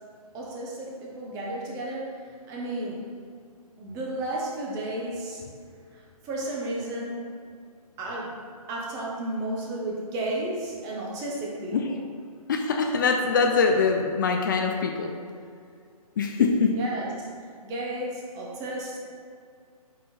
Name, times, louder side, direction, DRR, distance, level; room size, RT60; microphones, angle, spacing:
voice 1, 0.3-3.1 3.8-5.4 5.9-7.3 8.0-8.4 8.7-11.8 16.7-19.0, right 1 dB, 15° right, -3 dB, 1.2 m, -33 dB
voice 2, 12.5-15.1 16.2-16.8, left 5 dB, 30° left, 3 dB, 0.5 m, -23 dB
8.4 x 4.6 x 4.4 m, 2.3 s
figure-of-eight pair, 145°, 20 cm